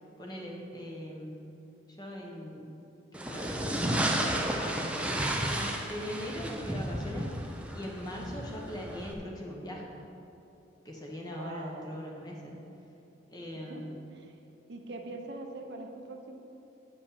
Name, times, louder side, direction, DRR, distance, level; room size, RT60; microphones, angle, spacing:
voice 1, 0.2-1.4 1.9-2.7 3.1-3.5 4.3-5.2 5.5-10.0 10.8-12.6 13.3-14.0, equal, 20° left, -1 dB, 1.1 m, -40 dB
sound 1, 3.1-9.1, right 1 dB, 5° right, 0.5 m, -32 dB
voice 2, 11.3-11.9 13.5-14.4 14.7-16.4, right 2 dB, 60° right, 3 dB, 0.8 m, -43 dB
8.4 x 5.2 x 6.9 m, 2.9 s
head